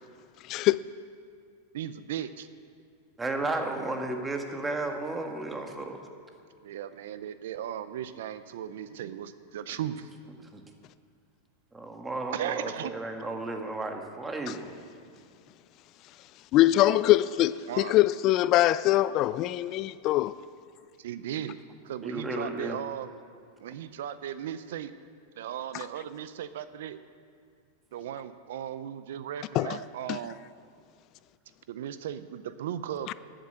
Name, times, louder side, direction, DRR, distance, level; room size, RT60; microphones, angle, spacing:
voice 1, 0.5-0.8 16.5-20.3 29.5-29.8 30.1-30.2 33.1-33.2, left 15 dB, 45° left, 0.3 m, -23 dB
voice 2, 1.7-2.5 6.6-10.1 12.3-12.9 17.7-17.9 21.0-21.6 21.8-23.1 23.6-24.9 25.4-27.0 27.9-30.4 31.7-33.1, right 10 dB, 75° right, 0.6 m, -36 dB
voice 3, 3.2-6.0 10.4-10.6 11.7-14.7 22.0-22.8, right 2 dB, 15° right, 1.6 m, -33 dB
12.0 x 8.9 x 7.8 m
hypercardioid pair, 125°, 0 cm